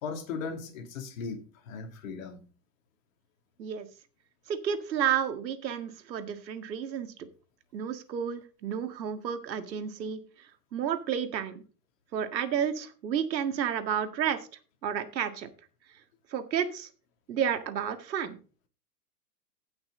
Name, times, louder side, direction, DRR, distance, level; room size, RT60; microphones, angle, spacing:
voice 1, 0.0-2.5, left 5 dB, 50° left, 2.5 m, -38 dB
voice 2, 4.5-7.1 7.7-10.2 10.7-11.6 12.1-14.5 14.8-15.5 16.3-16.9 17.3-18.4, right 8 dB, 85° right, 1.9 m, -31 dB
16.0 x 6.0 x 3.8 m
hypercardioid pair, 155°, 50 cm